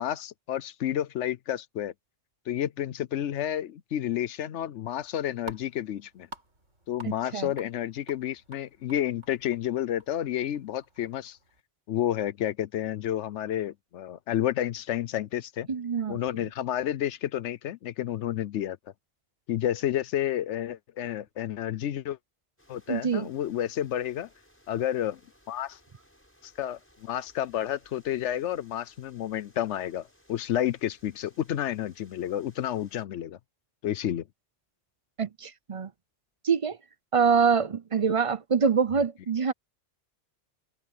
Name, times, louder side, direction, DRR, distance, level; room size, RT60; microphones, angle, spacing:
voice 1, 0.0-1.9 2.5-6.3 6.9-11.4 11.9-15.7 16.1-18.8 19.5-22.2 22.7-24.3 24.7-25.2 25.5-25.8 26.4-33.4 33.8-34.2, left 11 dB, 75° left, 0.9 m, -30 dB
sound 1, 4.9-11.6, right 2 dB, 80° right, 5.9 m, -50 dB
voice 2, 7.0-7.5 15.7-16.2 22.9-23.3 35.2-35.9 36.4-36.8 37.1-39.5, right 6 dB, 35° right, 0.6 m, -25 dB
sound 2, 22.6-33.0, equal, 10° left, 7.0 m, -62 dB
omnidirectional pair, 1.2 m